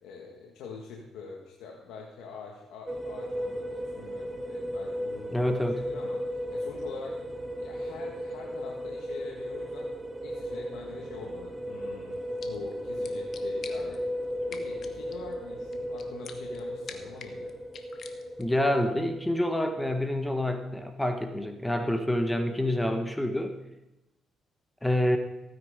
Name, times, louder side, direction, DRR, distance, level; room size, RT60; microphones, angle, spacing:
voice 1, 0.0-5.6 5.9-7.2 7.6-9.9 10.2-14.0 14.5-17.5, left 4 dB, 90° left, -1 dB, 1.8 m, -44 dB
sound 1, 2.9-20.1, equal, 25° right, 1.7 m, -36 dB
voice 2, 5.3-5.8 18.4-23.5 24.8-25.2, left 1 dB, 5° left, 6 dB, 1.4 m, -27 dB
sound 2, 12.1-18.6, left 6 dB, 55° left, 1.4 m, -49 dB
16.0 x 9.4 x 5.1 m, 0.98 s
cardioid pair, 90°, 0 cm